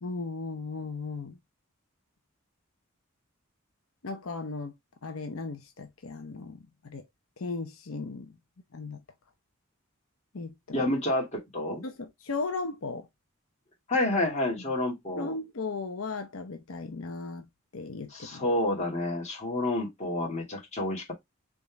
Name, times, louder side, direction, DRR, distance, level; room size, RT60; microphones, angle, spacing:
voice 1, 0.0-1.4 4.0-4.7 5.0-6.6 6.8-7.0 7.4-8.3 8.7-9.0 10.3-10.9 11.8-13.1 15.1-17.5 17.7-18.4, left 3 dB, 85° left, 0.8 m, -36 dB
voice 2, 10.7-11.8 13.9-15.4 18.1-21.1, left 1 dB, 35° left, 2.2 m, -29 dB
4.1 x 3.7 x 3.4 m
head